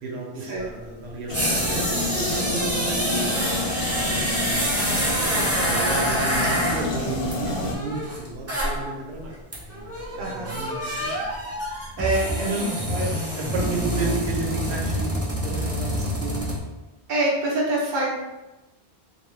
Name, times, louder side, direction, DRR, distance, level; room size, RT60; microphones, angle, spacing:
voice 1, 0.0-9.3 9.7-11.2 12.4-12.6 13.3-16.7, right 3 dB, 85° right, -1 dB, 0.9 m, -33 dB
sound 1, 0.6-0.7 1.1-8.9 9.2-9.3 9.5-16.6, right 1 dB, 20° right, 0.4 m, -27 dB
sound 2, 1.3-7.7, left 2 dB, 65° left, 0.7 m, -29 dB
voice 2, 10.2-10.5 12.0-13.1 13.7-13.8 17.1-18.1, right 1 dB, 55° right, -3 dB, 0.8 m, -26 dB
2.9 x 2.2 x 3.1 m, 1.0 s
omnidirectional pair, 1.0 m